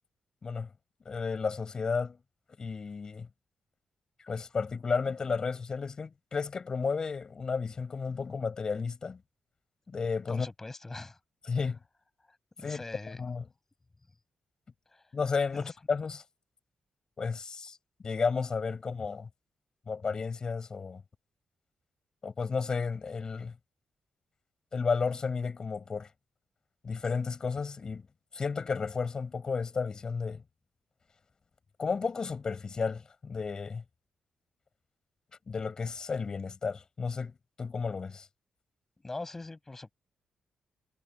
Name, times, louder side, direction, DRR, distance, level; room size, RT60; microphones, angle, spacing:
voice 1, 1.0-2.2 2.6-3.3 4.3-9.2 9.9-10.5 11.5-11.8 12.6-12.8 13.2-13.4 15.1-16.2 17.2-17.8 18.0-19.3 19.9-21.0 22.2-23.5 24.7-26.1 26.8-28.1 28.3-30.4 31.8-33.8 35.5-37.3 37.6-38.3, left 5 dB, 35° left, 5.9 m, -32 dB
voice 2, 10.3-11.2 12.6-13.2 14.9-15.0 15.5-15.7 39.0-39.9, left 2 dB, 15° left, 6.1 m, -42 dB
wide cardioid pair, 155°, 2 cm